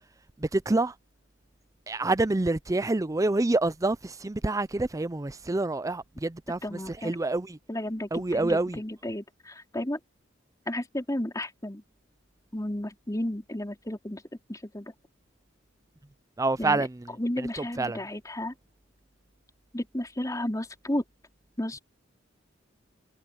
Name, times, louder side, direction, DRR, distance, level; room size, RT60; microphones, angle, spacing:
voice 1, 0.4-0.9 1.9-7.6 8.1-8.8 16.4-18.0, right 2 dB, 15° right, 0.5 m, -27 dB
voice 2, 6.6-7.2 7.7-10.0 10.7-11.8 12.5-14.2 14.5-14.9 16.6-16.9 17.2-18.5 19.7-21.0 21.6-21.8, left 1 dB, 20° left, 4.1 m, -33 dB
head